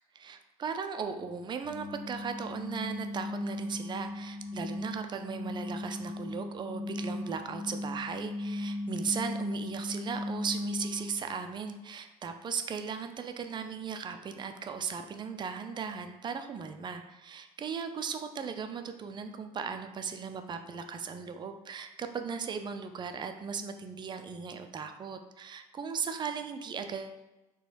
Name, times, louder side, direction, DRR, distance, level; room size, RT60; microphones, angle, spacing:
voice 1, 0.2-27.3, right 6 dB, 25° right, 7 dB, 0.4 m, -37 dB
sound 1, 1.6-11.3, left 1 dB, 80° left, 0.5 m, -37 dB
3.9 x 2.2 x 2.9 m, 1.0 s
figure-of-eight pair, 60°, 19 cm